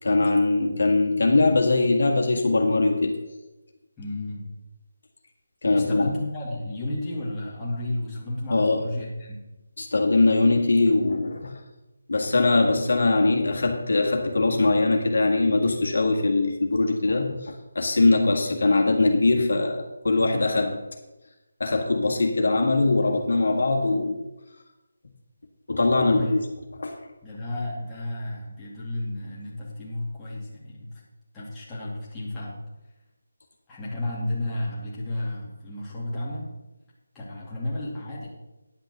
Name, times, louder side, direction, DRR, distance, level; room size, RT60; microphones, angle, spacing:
voice 1, 0.0-3.2 5.6-6.1 8.5-8.9 9.8-11.6 12.1-20.7 21.6-24.2 25.7-26.4 26.8-27.0, left 3 dB, 70° left, 2 dB, 1.8 m, -21 dB
voice 2, 4.0-4.5 5.7-9.5 26.1-26.5 27.2-31.0 31.3-32.6 33.7-36.5 37.1-38.3, left 1 dB, 10° left, -8 dB, 2.5 m, -32 dB
10.0 x 6.2 x 6.6 m, 1.0 s
figure-of-eight pair, 165°, 0 cm